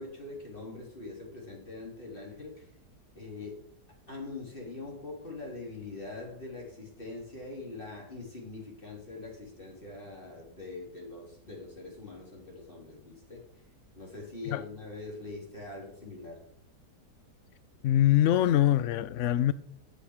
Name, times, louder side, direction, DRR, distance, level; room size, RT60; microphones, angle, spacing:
voice 1, 0.0-2.7 3.1-3.6 4.1-13.6 14.0-16.4, left 3 dB, 30° left, 3.8 m, -43 dB
voice 2, 17.8-19.5, left 12 dB, 80° left, 0.6 m, -23 dB
9.0 x 7.3 x 8.1 m
omnidirectional pair, 1.8 m